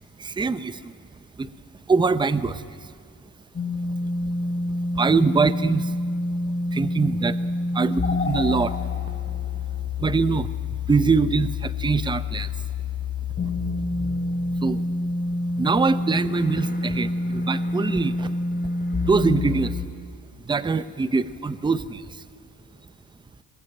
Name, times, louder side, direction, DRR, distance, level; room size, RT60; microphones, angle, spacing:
voice 1, 0.2-0.9 1.4-1.5 1.9-2.9 4.9-6.0 6.7-8.8 10.0-10.5 10.9-12.5 14.6-14.8 15.6-18.3 19.0-19.8 20.4-22.2, right 4 dB, 10° right, 14 dB, 0.7 m, -23 dB
sound 1, 3.5-19.8, left 2 dB, 25° left, 2.7 m, -27 dB
25.5 x 20.5 x 8.8 m, 2.1 s
cardioid pair, 120°, 36 cm